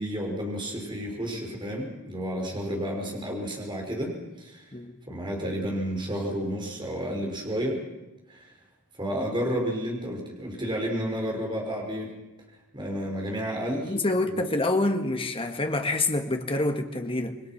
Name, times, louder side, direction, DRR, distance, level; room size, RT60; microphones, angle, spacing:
voice 1, 0.0-4.1 4.4-4.7 5.1-7.8 8.3-8.5 9.0-12.1 12.7-13.9 14.2-14.3, equal, 20° right, 5.6 m, -31 dB
voice 2, 13.9-17.4, left 2 dB, 25° left, 1.8 m, -27 dB
28.0 x 22.0 x 6.1 m
head